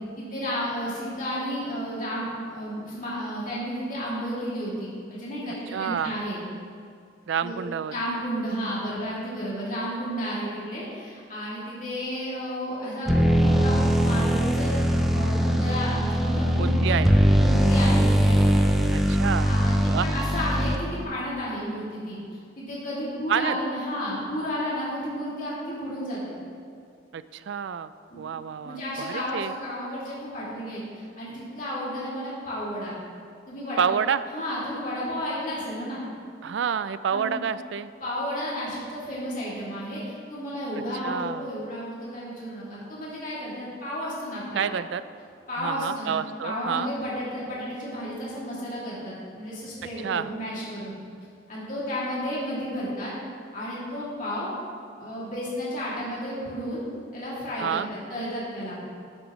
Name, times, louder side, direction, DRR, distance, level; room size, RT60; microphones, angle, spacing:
voice 1, 0.0-6.4 7.4-7.5 7.9-16.9 17.4-18.4 19.4-22.2 22.6-26.4 28.1-28.2 28.6-33.0 33.5-33.9 34.3-36.0 37.1-37.3 38.0-40.0 40.3-44.7 45.5-46.2 46.4-50.9 51.5-53.1 53.5-54.5 55.0-56.8 57.1-57.8 58.1-58.8, equal, 40° left, -7 dB, 2.6 m, -32 dB
voice 2, 5.7-6.2 7.3-7.9 16.5-17.1 18.9-19.5 19.9-20.1 23.3-23.6 27.1-27.9 28.2-28.8 29.1-29.5 33.8-34.2 36.4-37.9 41.0-41.5 44.5-45.0 45.6-46.9 50.0-50.3 57.6-57.9, right 7 dB, 65° right, 14 dB, 0.3 m, -28 dB
sound 1, 13.1-21.0, equal, ahead, 0.5 m, -21 dB
11.0 x 8.6 x 3.1 m, 2.3 s
head